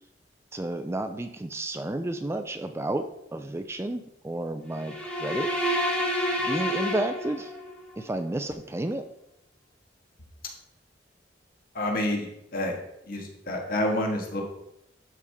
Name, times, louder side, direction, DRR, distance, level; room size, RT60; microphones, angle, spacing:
voice 1, 0.5-5.5 6.4-7.5 8.0-9.0, right 1 dB, 15° right, 8 dB, 0.4 m, -31 dB
sound 1, 4.8-7.8, equal, 5° left, 1.4 m, -29 dB
voice 2, 11.8-12.3 12.5-12.8 13.1-14.4, left 1 dB, 55° left, 0 dB, 1.7 m, -28 dB
12.0 x 4.8 x 3.5 m, 0.81 s
head